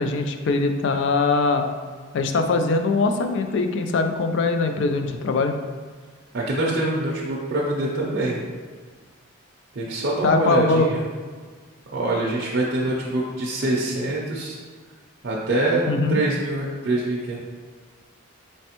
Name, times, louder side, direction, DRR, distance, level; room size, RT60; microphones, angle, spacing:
voice 1, 0.0-1.6 2.1-5.5 10.2-10.9 15.9-16.2, left 3 dB, 60° left, 6 dB, 0.3 m, -22 dB
voice 2, 6.3-8.4 9.7-11.0 11.9-14.6 15.2-17.4, right 2 dB, 50° right, -4 dB, 0.5 m, -24 dB
4.2 x 3.2 x 2.9 m, 1.5 s
head